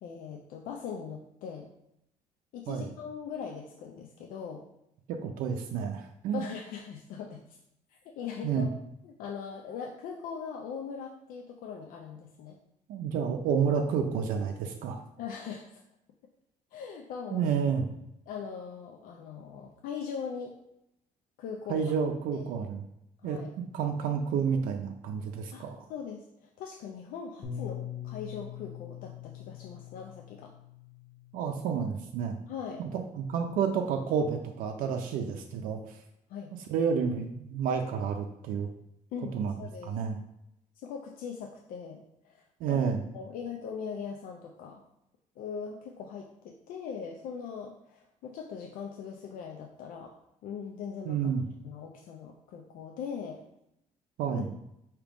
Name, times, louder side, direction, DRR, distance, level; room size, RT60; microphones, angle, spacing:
voice 1, 0.0-1.7 2.5-4.6 6.3-7.4 7.9-8.7 9.0-12.6 15.2-15.8 16.7-17.5 18.3-20.6 21.4-22.0 22.3-22.5 23.2-23.5 25.5-30.5 32.5-32.8 36.3-36.5 39.1-39.9 40.8-42.8 43.1-44.8 45.4-50.1 50.4-51.3 51.6-53.4 54.3-54.4, left 6 dB, 80° left, 1 dB, 0.5 m, -40 dB
voice 2, 5.1-6.4 8.4-8.7 12.9-15.0 17.3-17.9 21.7-22.8 23.2-23.4 23.7-25.9 31.3-32.4 32.8-35.8 36.7-38.7 39.3-39.5 39.8-40.2 42.6-43.0 51.1-51.4 54.2-54.5, right 6 dB, 85° right, 4 dB, 0.5 m, -30 dB
Bass guitar, 27.4-31.9 32.7-33.7, left 10 dB, 40° left, 0.7 m, -43 dB
4.9 x 2.8 x 3.5 m, 0.81 s
cardioid pair, 160°, 14 cm